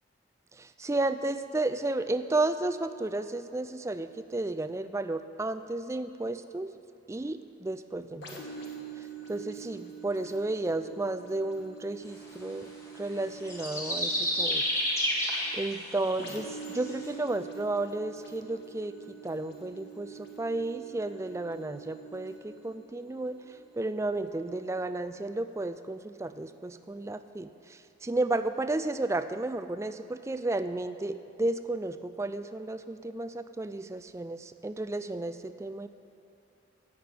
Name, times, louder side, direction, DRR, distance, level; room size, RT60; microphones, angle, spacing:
voice 1, 0.5-6.7 7.1-8.4 9.0-12.7 12.9-14.7 15.5-35.9, right 2 dB, 15° right, 10 dB, 0.3 m, -33 dB
sound 1, 8.2-25.7 26.3-26.4, right 5 dB, 60° left, 1.6 m, -46 dB
sound 2, 13.3-17.1, equal, 15° left, 1.8 m, -29 dB
13.5 x 6.0 x 9.3 m, 2.7 s
head